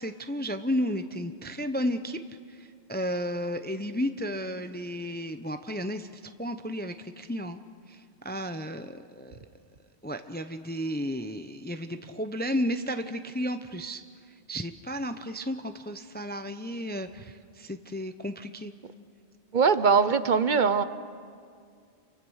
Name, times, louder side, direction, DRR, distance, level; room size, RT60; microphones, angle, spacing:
voice 1, 0.0-2.2 2.5-9.4 10.0-14.0 14.5-18.7, equal, 10° left, 9 dB, 0.6 m, -33 dB
voice 2, 19.5-20.8, right 5 dB, 45° right, 13 dB, 0.9 m, -21 dB
29.0 x 24.0 x 6.4 m, 2.3 s
omnidirectional pair, 1.2 m